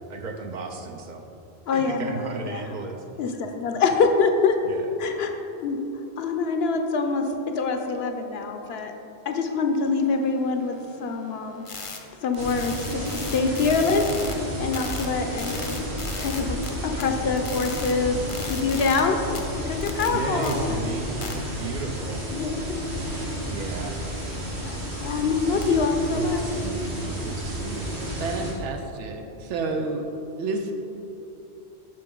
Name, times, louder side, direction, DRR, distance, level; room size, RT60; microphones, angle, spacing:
voice 1, 0.1-1.2 1.7-3.0 4.6-4.8 20.1-22.3 23.4-24.0 26.1-28.0, right 3 dB, 50° right, 4 dB, 0.6 m, -34 dB
voice 2, 1.7-2.6 3.2-4.6 5.0-5.8 6.2-7.3 7.6-8.9 9.3-11.6 12.2-15.8 16.2-16.6 16.8-18.2 18.4-19.2 19.7-20.8 22.3-22.8 24.6-26.4, left 4 dB, 70° left, 5 dB, 0.8 m, -25 dB
sound 1, 10.0-14.3 14.7-16.7 17.0-19.0 19.3-20.5 21.2-21.3 25.6-26.9, left 4 dB, 40° left, 0.5 m, -39 dB
sound 2, 12.4-28.5, equal, 70° right, 1.6 m, -32 dB
sound 3, 14.2-20.1, equal, 10° right, 0.6 m, -41 dB
voice 3, 28.2-30.1 30.4-30.7, right 3 dB, 90° right, 4 dB, 0.9 m, -29 dB
7.6 x 5.9 x 3.7 m, 2.8 s
omnidirectional pair, 1.2 m